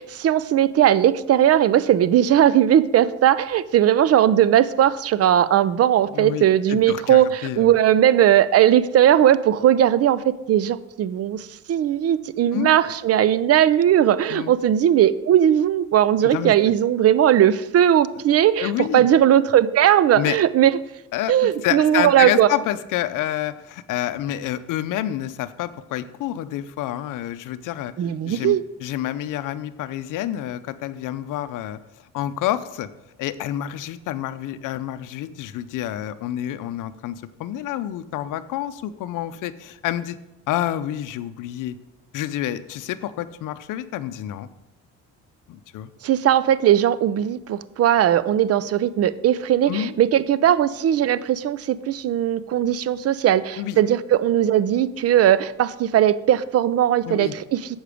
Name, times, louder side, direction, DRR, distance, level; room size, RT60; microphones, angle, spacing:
voice 1, 0.0-20.7 21.3-22.5 28.0-28.6 46.0-57.6, right 11 dB, 50° right, 17 dB, 0.5 m, -18 dB
voice 2, 6.0-7.7 12.5-12.7 14.3-14.5 16.3-16.5 18.6-19.1 20.1-20.4 21.1-31.8 32.1-32.9 33.2-40.2 40.5-41.7 42.1-44.5 45.5-45.9 49.7-50.0 53.6-53.8 57.0-57.3, left 12 dB, 70° left, 14 dB, 0.6 m, -28 dB
7.9 x 6.6 x 5.0 m, 0.95 s
supercardioid pair, 85°, 33 cm